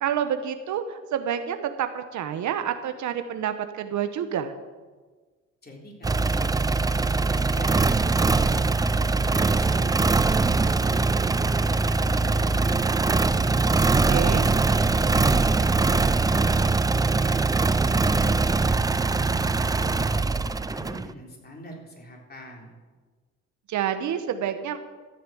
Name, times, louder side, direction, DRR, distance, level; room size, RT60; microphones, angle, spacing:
voice 1, 0.0-4.5 14.1-14.5 23.7-24.8, right 9 dB, 70° right, 9 dB, 1.0 m, -28 dB
voice 2, 5.6-6.9 7.1-9.9 10.3-12.8 13.2-14.5 14.9-17.4 17.8-22.7, equal, 30° left, -1 dB, 3.6 m, -44 dB
sound 1, 6.0-21.1, right 3 dB, 15° right, 0.4 m, -22 dB
14.0 x 7.0 x 7.7 m, 1.4 s
cardioid pair, 90°, 30 cm